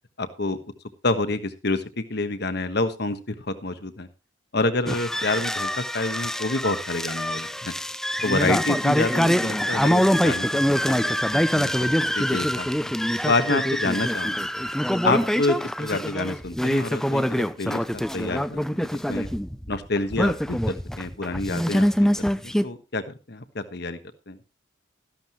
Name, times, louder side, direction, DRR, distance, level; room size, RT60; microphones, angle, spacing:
voice 1, 0.2-0.6 1.0-4.1 4.5-7.7 8.2-12.9 13.2-14.5 15.0-19.3 19.7-22.1 22.4-24.0 24.3-24.4, left 2 dB, 55° left, 10 dB, 1.3 m, -28 dB
sound 1, 4.9-22.6, equal, ahead, 0.5 m, -24 dB
14.0 x 11.5 x 3.1 m, 0.29 s
head